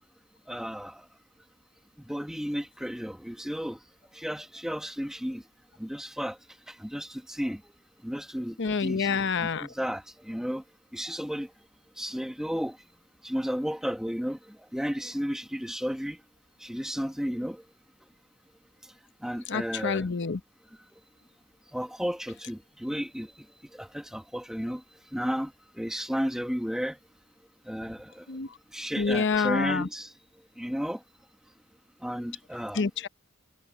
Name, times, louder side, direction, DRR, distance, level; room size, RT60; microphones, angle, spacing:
voice 1, 0.5-1.1 2.0-3.8 4.1-5.4 5.8-6.4 6.7-7.6 8.0-9.1 9.4-10.6 10.9-11.5 12.0-12.8 13.2-16.2 16.6-17.6 19.2-20.1 21.7-23.3 23.7-24.8 25.1-27.0 27.7-28.2 28.7-30.1 30.6-31.0 32.0-32.8, equal, ahead, 1.4 m, -33 dB
voice 2, 8.6-9.7 19.5-20.4 28.3-28.5 29.0-29.9 32.7-33.1, left 5 dB, 55° left, 0.8 m, -27 dB
head